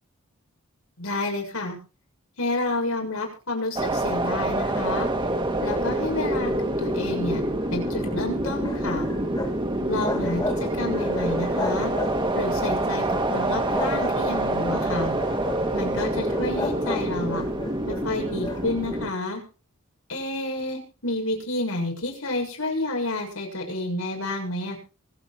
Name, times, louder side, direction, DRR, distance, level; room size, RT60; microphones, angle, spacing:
voice 1, 1.0-1.8 2.4-5.1 5.6-7.4 7.7-9.0 9.9-11.9 12.3-15.1 15.7-17.4 17.9-19.4 20.1-24.8, left 2 dB, 90° left, 1 dB, 7.1 m, -30 dB
sound 1, 3.7-19.1, right 1 dB, 25° right, 1.9 m, -26 dB
sound 2, 7.6-9.6 9.8-10.6 10.9-12.4 12.8-14.5 15.1-15.7 16.2-18.6, left 2 dB, 20° left, 2.3 m, -34 dB
24.0 x 8.7 x 4.6 m, 0.35 s
head